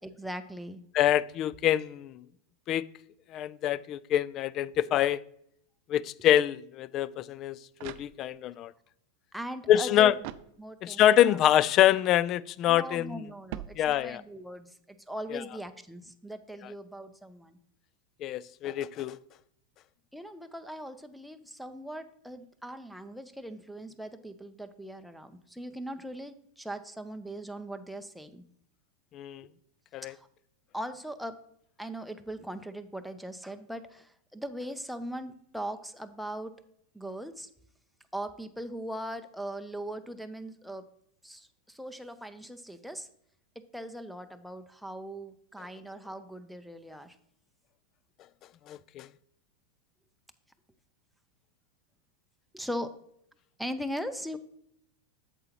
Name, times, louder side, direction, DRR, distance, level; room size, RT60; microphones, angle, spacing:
voice 1, 0.0-0.8 9.3-10.1 10.6-11.4 12.7-17.6 20.1-28.4 30.0-30.3 30.7-31.4 31.8-36.5 36.9-37.5 38.1-40.9 41.2-43.1 43.6-47.1 52.5-52.9 53.6-54.4, equal, ahead, 0.6 m, -40 dB
voice 2, 0.9-2.2 2.7-2.9 3.3-5.2 5.9-8.7 9.7-10.1 10.8-13.2 13.8-14.2 15.3-15.4 18.2-19.2 29.1-29.5 29.9-30.1 48.7-49.1, left 11 dB, 40° left, 0.3 m, -25 dB
sound 1, 7.7-8.6 10.2-11.1 13.5-14.4, right 13 dB, 55° right, 0.4 m, -44 dB
8.4 x 7.0 x 2.9 m
hypercardioid pair, 95°, 0 cm